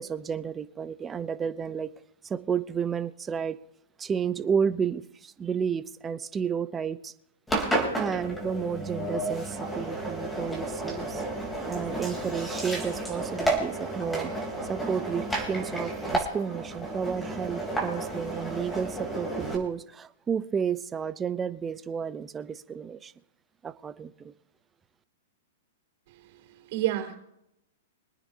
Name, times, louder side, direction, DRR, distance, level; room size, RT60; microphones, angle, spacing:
voice 1, 0.0-1.9 2.2-3.6 4.0-7.1 7.9-11.2 11.7-14.3 14.6-23.1 23.6-24.3, right 7 dB, 15° right, 13 dB, 0.7 m, -31 dB
Engine, 7.5-19.6, right 1 dB, 5° left, 3.6 m, -32 dB
voice 2, 26.1-27.1, right 14 dB, 50° right, 2 dB, 4.7 m, -31 dB
25.0 x 9.6 x 2.8 m, 0.81 s
hypercardioid pair, 135°, 0 cm